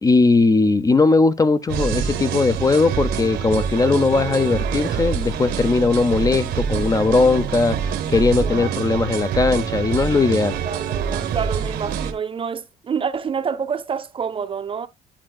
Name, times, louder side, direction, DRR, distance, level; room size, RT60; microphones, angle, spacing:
voice 1, 0.0-10.6, left 3 dB, 20° left, 0.5 m, -19 dB
sound 1, 1.7-12.1, right 8 dB, 80° right, 1.2 m, -26 dB
voice 2, 10.7-14.9, right 6 dB, 30° right, 0.6 m, -27 dB
10.0 x 5.7 x 2.2 m
cardioid pair, 110°, 17 cm